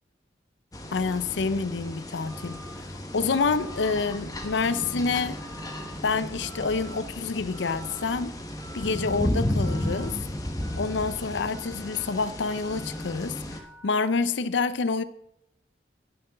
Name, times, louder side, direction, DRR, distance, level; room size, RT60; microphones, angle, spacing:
sound 1, 0.7-13.6, left 1 dB, 20° left, 1.1 m, -34 dB
voice 1, 0.9-2.6 2.9-5.4 6.0-8.4 8.7-10.2 10.7-15.0, left 4 dB, 85° left, 0.6 m, -28 dB
Telephone, 2.3-2.7 3.3-3.9 4.3-5.0 5.4-5.9 6.4-7.0 7.5-8.1 8.6-9.1 9.6-10.1 10.6-11.1 11.5-12.1 12.5-13.1 13.5-14.1, right 3 dB, 20° right, 2.5 m, -48 dB
8.9 x 7.7 x 6.7 m
head